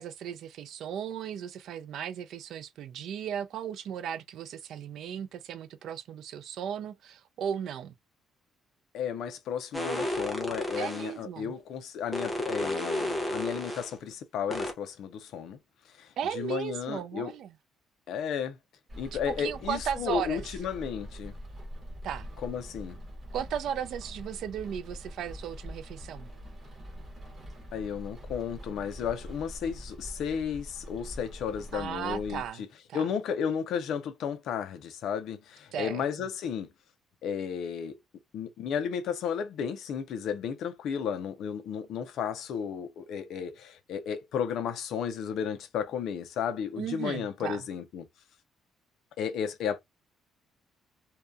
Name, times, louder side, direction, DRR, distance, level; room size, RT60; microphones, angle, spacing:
voice 1, 0.0-7.9 10.8-11.5 16.2-17.6 19.2-20.5 22.0-22.3 23.3-26.3 31.7-32.6 32.9-33.1 35.7-36.0 46.8-47.6, right 9 dB, 60° right, 0.4 m, -36 dB
voice 2, 8.9-15.6 16.0-17.3 18.1-18.6 19.0-21.3 22.4-23.0 27.7-32.7 32.9-36.7 37.2-38.0 38.3-48.1 49.2-49.8, left 7 dB, 60° left, 0.5 m, -33 dB
sound 1, 9.7-11.1 12.1-13.9 14.5-14.7, left 1 dB, 5° left, 0.7 m, -32 dB
Rain, 18.9-32.5, equal, 25° right, 1.0 m, -44 dB
2.7 x 2.3 x 2.3 m
cardioid pair, 170°, 0 cm